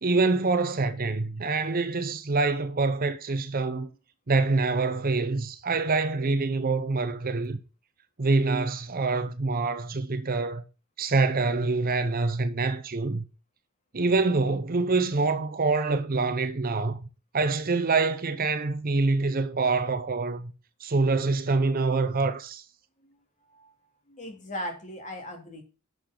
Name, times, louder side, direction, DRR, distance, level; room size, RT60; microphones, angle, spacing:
voice 1, 0.0-3.9 4.3-7.6 8.2-10.6 11.0-13.2 13.9-17.1 17.3-20.5 20.8-22.6, right 3 dB, 40° right, 0.7 m, -25 dB
voice 2, 24.1-25.6, equal, 35° left, 2.7 m, -38 dB
10.5 x 6.7 x 3.8 m
head